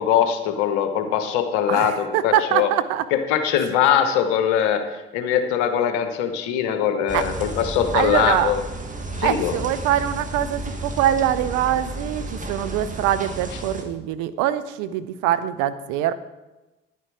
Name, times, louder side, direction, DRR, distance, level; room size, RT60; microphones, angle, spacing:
voice 1, 0.0-2.7 3.1-4.8 5.1-8.6 9.2-9.5, left 9 dB, 70° left, 8 dB, 1.2 m, -21 dB
voice 2, 1.7-3.0 7.1-7.2 7.9-8.5 9.2-16.1, right 11 dB, 70° right, 12 dB, 0.7 m, -23 dB
sound 1, 7.1-13.8, right 2 dB, 25° right, 1.9 m, -32 dB
10.0 x 9.4 x 4.8 m, 1.1 s
hypercardioid pair, 50°, 30 cm